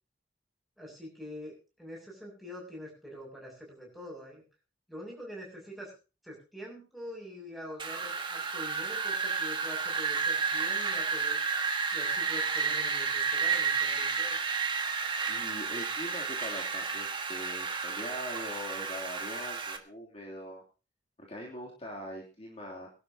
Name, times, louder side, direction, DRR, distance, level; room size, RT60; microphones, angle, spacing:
voice 1, 0.8-4.4 4.9-5.9 6.2-11.4 11.9-14.4, equal, ahead, -2 dB, 6.9 m, -45 dB
Wind, 7.8-19.8, right 5 dB, 25° right, 1.6 m, -31 dB
voice 2, 15.3-20.6 21.2-22.9, equal, 35° left, -2 dB, 3.1 m, -42 dB
22.5 x 12.0 x 2.9 m, 0.33 s
head